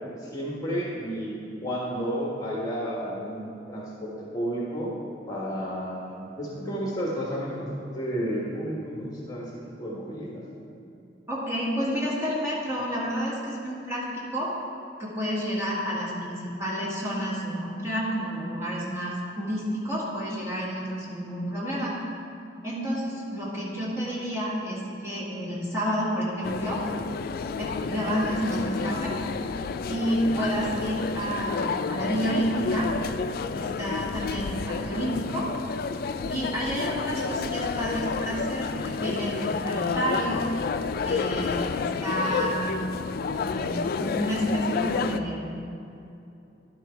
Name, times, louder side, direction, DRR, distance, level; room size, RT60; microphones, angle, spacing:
voice 1, 0.1-1.3 1.6-4.9 5.3-9.5 9.8-10.4, equal, 20° left, -5 dB, 1.4 m, -32 dB
voice 2, 11.3-14.5 15.0-21.9 22.6-26.8 27.6-29.1 29.9-32.9 33.5-35.5 36.2-40.5 41.0-42.8 43.3-45.5, equal, 15° right, -6 dB, 1.9 m, -30 dB
sound 1, 26.4-45.2, left 5 dB, 55° left, 0.3 m, -30 dB
11.0 x 6.1 x 4.5 m, 2.7 s
head